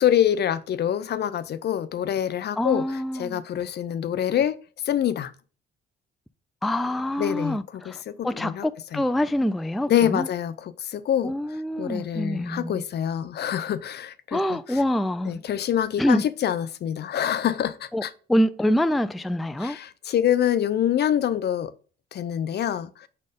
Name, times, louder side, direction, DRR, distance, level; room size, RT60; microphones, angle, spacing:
voice 1, 0.0-2.8 3.1-4.6 4.8-5.3 7.2-8.7 8.9-9.0 9.9-11.3 11.8-14.8 15.3-18.1 19.6-21.7 22.1-23.1, left 10 dB, 55° left, 0.5 m, -25 dB
voice 2, 2.6-3.4 6.6-10.3 11.2-12.8 14.3-15.4 16.0-16.2 17.9-19.8, left 1 dB, ahead, 0.3 m, -26 dB
5.3 x 4.2 x 5.0 m
cardioid pair, 90°, 20 cm